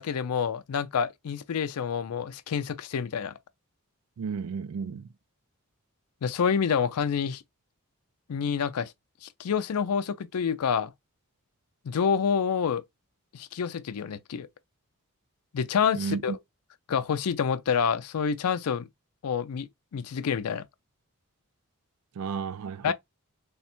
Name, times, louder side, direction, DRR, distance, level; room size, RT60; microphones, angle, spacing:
voice 1, 0.0-3.3 6.2-7.4 8.3-8.9 9.2-10.9 11.8-12.8 13.3-14.5 15.5-16.4 16.9-18.9 19.2-20.7 22.8-22.9, left 6 dB, 90° left, 0.4 m, -28 dB
voice 2, 4.2-5.1 16.0-16.4 22.2-22.9, right 5 dB, 80° right, 0.4 m, -33 dB
3.4 x 2.1 x 4.3 m
head